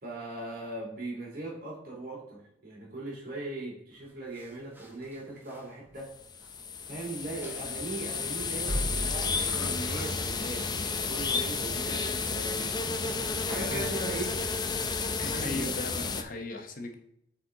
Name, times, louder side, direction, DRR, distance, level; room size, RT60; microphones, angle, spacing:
voice 1, 0.0-6.1 6.9-12.8 13.4-14.3 15.2-15.7, right 2 dB, 55° right, -2 dB, 2.9 m, -39 dB
sound 1, 4.3-6.6 6.9-7.0 7.4-8.1 8.6-10.4 10.8-11.0, equal, 10° right, 1.1 m, -38 dB
sound 2, 6.2-16.2, left 4 dB, 25° left, 0.5 m, -32 dB
voice 2, 15.2-17.0, left 2 dB, 50° left, 4 dB, 1.0 m, -37 dB
8.4 x 4.4 x 3.8 m, 0.76 s
head